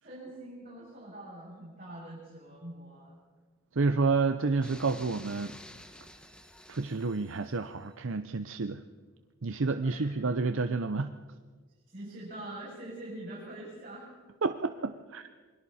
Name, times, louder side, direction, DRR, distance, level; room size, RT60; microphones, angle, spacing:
voice 1, 0.0-3.1 9.8-10.1 11.9-14.1, right 1 dB, 40° right, -7 dB, 7.1 m, -44 dB
voice 2, 3.8-5.5 6.7-8.8 9.4-11.1 14.4-15.2, right 4 dB, 65° right, 9 dB, 0.7 m, -29 dB
sound 1, 4.6-7.8, left 1 dB, 5° left, 1.1 m, -51 dB
28.0 x 22.0 x 4.3 m, 1.4 s
head